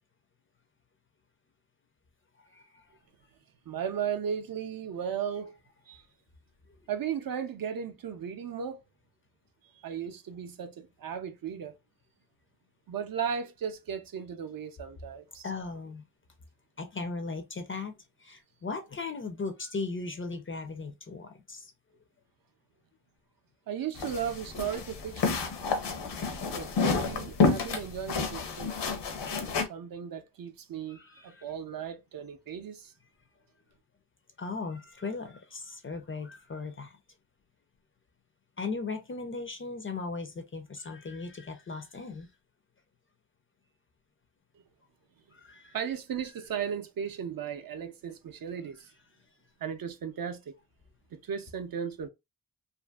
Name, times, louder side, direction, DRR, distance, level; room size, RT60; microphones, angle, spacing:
voice 1, 2.4-2.8 15.4-16.0 16.8-21.7 30.9-31.4 34.4-37.0 38.6-42.3 45.3-45.8, left 4 dB, 30° left, 0.4 m, -38 dB
voice 2, 3.7-5.6 5.9-6.0 6.9-8.8 9.8-11.7 12.9-15.5 23.7-25.5 26.5-28.8 29.7-32.9 45.7-48.9 49.6-50.5 51.1-52.1, right 8 dB, 55° right, 0.5 m, -36 dB
sound 1, 24.0-29.6, left 4 dB, 80° left, 0.7 m, -30 dB
2.5 x 2.5 x 2.2 m
wide cardioid pair, 120°, 41 cm